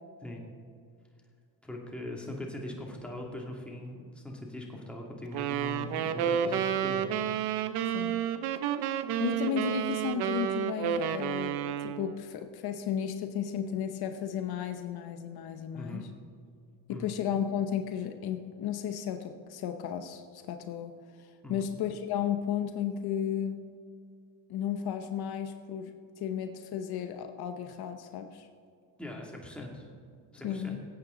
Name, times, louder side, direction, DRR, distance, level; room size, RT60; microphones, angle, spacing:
voice 1, 1.6-7.1 15.7-16.1 16.9-17.1 21.4-21.7 29.0-29.9 30.3-30.8, left 1 dB, 5° left, -1 dB, 2.4 m, -41 dB
sound 1, 5.3-12.2, right 9 dB, 70° right, 0.8 m, -30 dB
voice 2, 9.2-16.1 16.9-20.9 21.2-23.6 24.5-28.5 30.4-30.8, left 9 dB, 65° left, 7 dB, 0.9 m, -34 dB
17.5 x 8.2 x 3.9 m, 2.3 s
cardioid pair, 95°, 40 cm